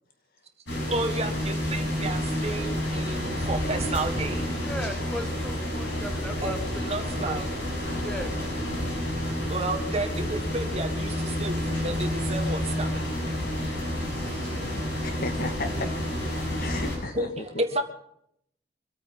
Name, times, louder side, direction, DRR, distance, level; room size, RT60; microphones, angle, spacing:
sound 1, 0.7-17.0, left 1 dB, 85° left, 6.7 m, -29 dB
voice 1, 0.9-4.5 6.4-7.5 9.2-13.1 14.0-14.7 17.1-17.3 17.6-17.8, right 2 dB, 35° right, 6 dB, 1.7 m, -32 dB
voice 2, 4.6-7.4 8.0-8.3 14.0-14.2 15.8-15.9, equal, 5° left, 7 dB, 1.3 m, -38 dB
voice 3, 15.0-16.1 16.6-17.6, left 2 dB, 55° left, 7 dB, 1.9 m, -35 dB
24.0 x 8.9 x 5.5 m, 0.70 s
head